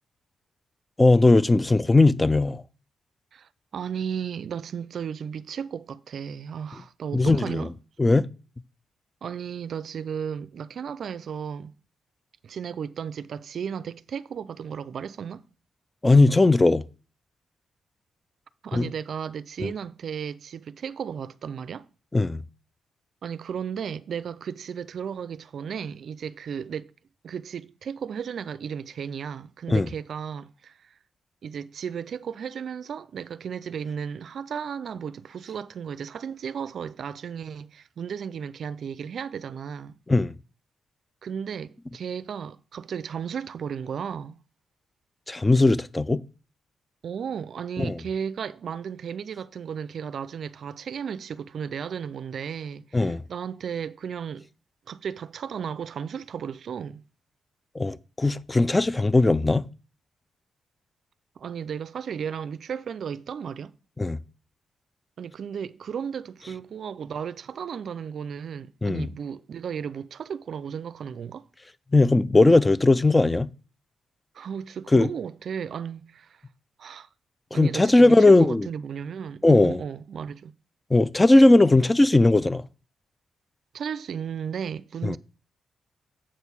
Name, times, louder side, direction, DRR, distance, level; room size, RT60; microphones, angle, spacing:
voice 1, 1.0-2.6 7.1-7.7 8.0-8.3 16.0-16.8 18.7-18.9 19.6-19.7 22.1-22.4 29.7-29.9 40.1-40.3 45.3-46.2 47.8-48.0 52.9-53.2 57.8-59.6 64.0-64.2 68.8-69.1 71.9-73.5 74.9-75.1 77.5-78.7 79.4-79.8 80.9-82.6 85.0-85.2, left 2 dB, 15° left, 0.3 m, -18 dB
voice 2, 3.3-7.7 9.2-11.7 12.4-15.5 18.6-21.9 23.2-26.9 27.2-30.9 31.4-40.0 41.2-44.4 47.0-54.5 54.9-57.0 61.4-63.7 65.2-71.5 74.3-76.4 76.8-77.1 77.5-80.5 83.7-85.2, right 7 dB, 60° right, 0.4 m, -34 dB
7.4 x 4.6 x 6.8 m
cardioid pair, 125°, 0 cm